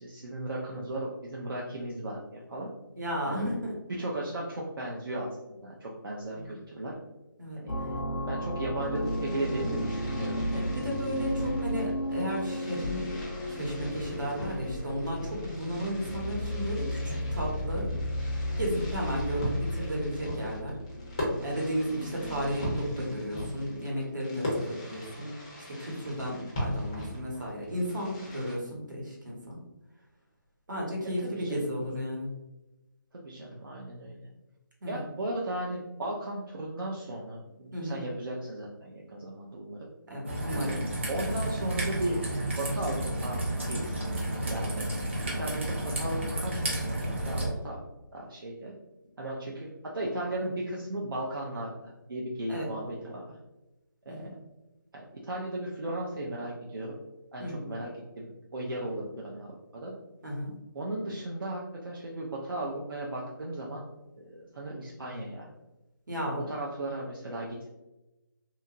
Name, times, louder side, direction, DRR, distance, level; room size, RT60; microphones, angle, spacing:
voice 1, 0.0-2.7 3.3-3.5 4.0-5.3 5.6-6.9 7.6-7.7 8.3-10.4 11.2-11.3 26.1-26.3 31.2-31.6 33.1-34.3 34.9-39.9 40.5-40.8 41.1-42.2 42.6-43.4 43.7-44.2 44.5-44.9 45.3-47.8 48.1-48.7 49.2-53.4 54.1-54.2 54.9-56.9 57.3-57.9 58.2-59.9 60.7-63.9 64.2-65.5 66.2-67.7, right 1 dB, 80° right, -4 dB, 0.6 m, -36 dB
voice 2, 3.0-3.7 6.3-6.6 7.4-7.9 10.5-13.1 13.5-17.9 18.6-20.7 21.4-25.3 25.7-29.6 30.7-32.3 34.8-35.0 37.7-38.0 40.1-40.8 52.5-52.7 54.1-54.3 57.4-57.8 60.2-60.5 66.1-66.4, equal, 65° right, -2 dB, 1.1 m, -34 dB
sound 1, 7.7-22.7, equal, 75° left, 0.5 m, -34 dB
Fireworks, 8.7-28.5, equal, 15° left, 0.4 m, -39 dB
Raindrop / Trickle dribble, 40.3-47.5, right 1 dB, 35° right, 0.6 m, -32 dB
2.9 x 2.4 x 2.4 m, 1.0 s
figure-of-eight pair, 170°, 11 cm